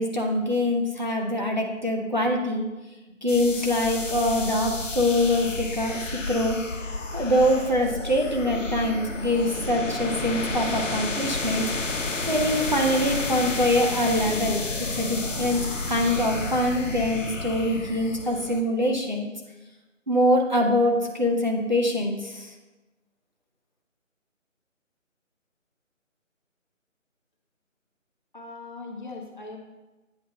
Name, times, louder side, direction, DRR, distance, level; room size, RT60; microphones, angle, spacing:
voice 1, 0.0-2.7 3.2-6.6 7.1-11.7 12.3-14.7 15.0-19.3 20.1-22.5, left 1 dB, 35° right, 0 dB, 0.5 m, -24 dB
sound 1, 3.3-18.6, left 3 dB, 70° left, 1.0 m, -31 dB
voice 2, 28.3-29.6, left 3 dB, 40° left, 1 dB, 0.9 m, -39 dB
8.3 x 2.9 x 5.6 m, 1.1 s
figure-of-eight pair, 165°, 39 cm